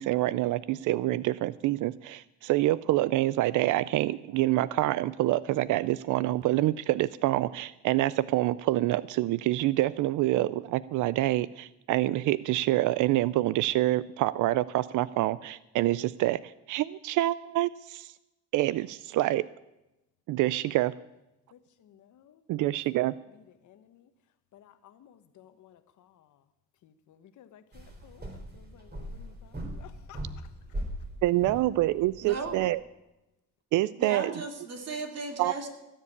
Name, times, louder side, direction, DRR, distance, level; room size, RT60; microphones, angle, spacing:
voice 1, 0.0-18.1 18.5-19.5 20.3-20.9 22.5-23.1 31.2-32.8 33.7-34.3 35.4-35.5, right 16 dB, 85° right, 0.4 m, -26 dB
voice 2, 21.5-24.1 24.5-26.5 26.8-30.5 31.8-32.4, left 10 dB, 75° left, 1.1 m, -56 dB
sound 1, 27.7-32.7, right 1 dB, 35° right, 3.9 m, -40 dB
voice 3, 32.2-32.6 33.9-35.7, right 4 dB, 55° right, 2.8 m, -36 dB
17.5 x 7.4 x 8.5 m
cardioid pair, 90°, 30 cm